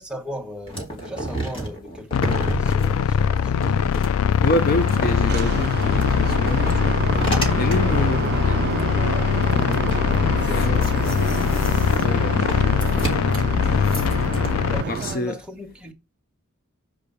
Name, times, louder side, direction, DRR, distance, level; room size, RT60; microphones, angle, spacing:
voice 1, 0.0-3.7 10.0-11.3 14.7-15.9, equal, 5° right, 1.3 m, -38 dB
sound 1, 0.7-8.2 8.8-8.9 9.1-14.5, right 1 dB, 25° left, 2.1 m, -32 dB
sound 2, 2.1-14.8, left 7 dB, 85° left, 0.3 m, -21 dB
voice 2, 4.4-7.0 7.6-8.6 10.5-10.9 12.0-12.4 12.6-12.9 14.9-15.4, left 1 dB, 45° left, 0.6 m, -27 dB
sound 3, 4.4-15.2, right 6 dB, 50° right, 0.3 m, -29 dB
6.7 x 4.9 x 6.9 m
head